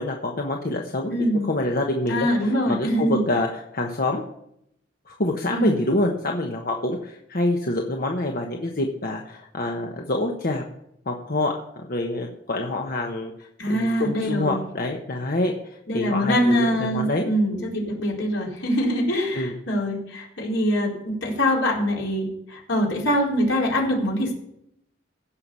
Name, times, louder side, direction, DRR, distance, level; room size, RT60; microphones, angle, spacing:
voice 1, 0.0-1.1 1.4-4.2 5.1-10.6 11.1-11.5 11.8-13.3 13.7-15.5 15.9-17.3 19.3-19.5, left 2 dB, 50° left, 1 dB, 1.2 m, -26 dB
voice 2, 1.1-1.5 2.1-3.2 5.5-5.7 13.6-14.6 15.9-24.3, equal, 80° left, -3 dB, 4.3 m, -24 dB
16.0 x 5.9 x 7.0 m, 0.77 s
head